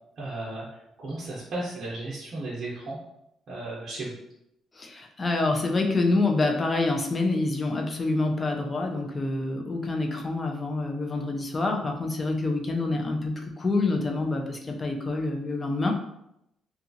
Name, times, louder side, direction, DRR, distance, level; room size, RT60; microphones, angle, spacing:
voice 1, 0.2-0.7 1.0-3.0 3.5-4.1, right 2 dB, 50° right, -6 dB, 0.7 m, -34 dB
voice 2, 4.7-15.9, left 2 dB, 25° left, 2 dB, 0.4 m, -27 dB
2.7 x 2.3 x 2.6 m, 0.82 s
cardioid pair, 115°, 0 cm